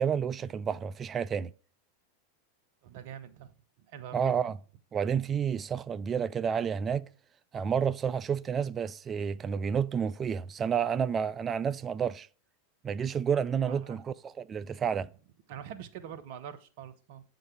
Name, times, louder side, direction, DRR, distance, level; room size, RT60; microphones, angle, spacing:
voice 1, 0.0-1.5 4.1-4.6 4.9-7.1 7.5-12.3 12.8-15.1, right 7 dB, 25° right, 0.3 m, -30 dB
voice 2, 2.8-3.5 3.9-4.2 13.7-14.0 14.6-14.8 15.5-17.2, right 9 dB, 55° right, 0.8 m, -44 dB
7.7 x 3.9 x 4.9 m
figure-of-eight pair, 90°, 0 cm